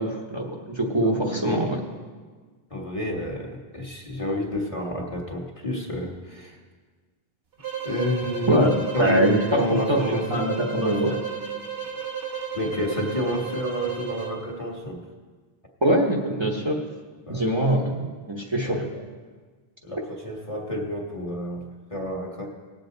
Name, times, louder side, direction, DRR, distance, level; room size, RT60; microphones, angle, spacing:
voice 1, 0.0-1.8 8.5-9.6 9.9-10.0 10.3-11.2 15.8-16.8 17.3-18.8, right 1 dB, 30° right, -1 dB, 1.1 m, -23 dB
voice 2, 1.0-1.6 2.7-6.6 7.8-8.7 8.9-10.5 10.8-11.2 12.5-15.0 17.3-17.7 18.5-19.0 19.8-22.5, left 1 dB, 35° left, -1 dB, 1.5 m, -30 dB
sound 1, 7.6-14.4, right 8 dB, 80° right, 1.5 m, -33 dB
18.5 x 7.7 x 4.0 m, 1.4 s
omnidirectional pair, 1.0 m